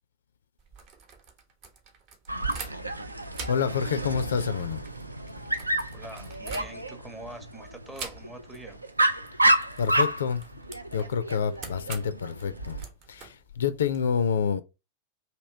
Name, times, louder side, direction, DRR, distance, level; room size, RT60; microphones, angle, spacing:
sound 1, 0.6-3.0 3.3-7.1 7.9-8.6 8.9-9.1 9.4-14.0, right 5 dB, 40° right, 0.9 m, -44 dB
Dog, 2.3-12.9, right 1 dB, 85° right, 0.4 m, -30 dB
voice 1, 3.5-4.8 9.8-10.4 10.9-12.8 13.1-14.6, left 7 dB, 65° left, 0.3 m, -28 dB
voice 2, 5.9-8.8, right 1 dB, 10° right, 0.7 m, -44 dB
2.9 x 2.9 x 4.2 m
figure-of-eight pair, 90°, 0 cm